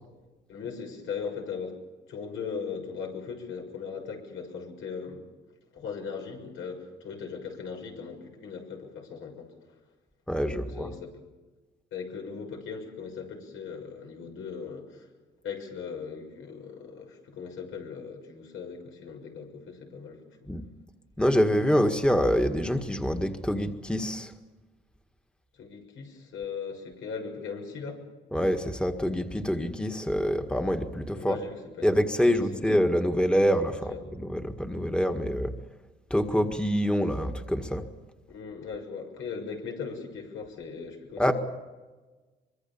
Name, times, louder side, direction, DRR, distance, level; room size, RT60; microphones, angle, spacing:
voice 1, 0.5-1.8 2.1-5.2 5.7-9.5 10.5-11.1 11.9-15.1 15.4-20.2 25.6-28.0 31.1-31.9 32.3-32.6 33.9-34.0 38.3-41.3, left 6 dB, 80° left, 2 dB, 6.6 m, -38 dB
voice 2, 10.3-10.9 20.5-20.6 21.2-24.3 28.3-31.4 31.8-35.5 36.1-37.8 41.2-41.3, equal, 5° left, 6 dB, 1.8 m, -26 dB
24.5 x 22.5 x 7.1 m, 1.2 s
cardioid pair, 90°, 20 cm